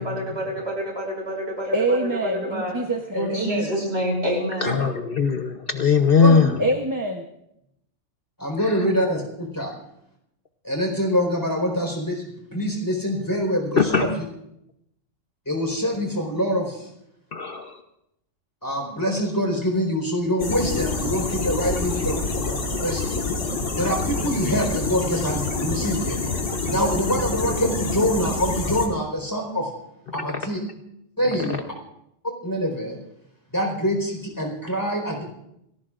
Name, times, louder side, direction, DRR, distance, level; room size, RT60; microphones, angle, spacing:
voice 1, 0.0-2.0 2.5-2.7 3.1-4.8, equal, 60° right, 0 dB, 5.9 m, -27 dB
voice 2, 1.7-3.7 6.6-7.2, right 1 dB, 20° right, 1 dB, 0.9 m, -25 dB
voice 3, 4.6-6.6 8.6-8.8 13.8-14.2 17.3-17.8 30.1-30.2 31.4-31.6, left 5 dB, 50° left, 5 dB, 1.0 m, -21 dB
voice 4, 8.4-9.7 10.6-12.2 12.5-14.1 15.5-16.9 18.6-22.2 22.8-23.2 23.8-26.2 26.7-29.7 30.1-30.6 31.2-31.6 32.4-33.0 33.5-35.2, equal, 15° left, 1 dB, 4.5 m, -25 dB
sound 1, 20.4-28.9, left 3 dB, 70° left, 2.1 m, -27 dB
28.0 x 18.5 x 2.5 m, 0.80 s
omnidirectional pair, 1.3 m